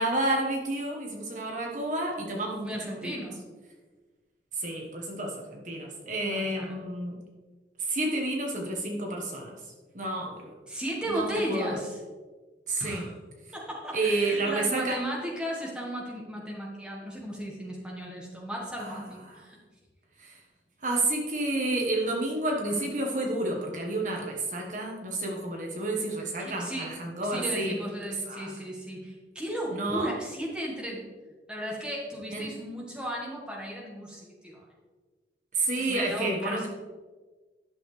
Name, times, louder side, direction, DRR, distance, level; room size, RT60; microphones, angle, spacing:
voice 1, 0.0-3.2 4.5-7.2 7.8-9.6 9.9-10.4 11.1-11.8 12.7-13.1 13.9-15.0 18.8-19.0 19.3-19.4 20.2-20.4 20.8-27.8 28.2-28.5 29.7-30.1 32.3-32.5 35.5-36.7, right 2 dB, 45° right, 0 dB, 1.2 m, -30 dB
voice 2, 2.6-3.4 6.3-6.8 10.7-12.0 12.8-13.1 13.5-19.6 22.6-22.8 26.4-26.9 27.2-31.1 31.5-34.6 35.7-36.7, equal, 5° right, -3 dB, 1.5 m, -35 dB
11.0 x 6.4 x 3.2 m, 1.3 s
head